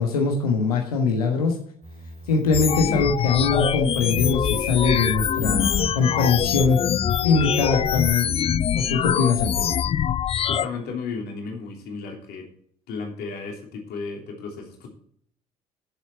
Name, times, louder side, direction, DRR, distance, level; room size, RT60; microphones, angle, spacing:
voice 1, 0.0-1.6 2.3-6.8 7.2-8.3 8.7-9.7, left 4 dB, 80° left, 2 dB, 1.3 m, -22 dB
sound 1, 1.8-8.8, equal, 35° right, 3.1 m, -39 dB
sound 2, 2.5-10.7, left 9 dB, 30° left, 0.4 m, -24 dB
voice 2, 10.4-12.5 12.9-14.9, left 4 dB, 60° left, 1 dB, 3.0 m, -34 dB
10.5 x 7.5 x 4.5 m, 0.62 s
figure-of-eight pair, 50°, 19 cm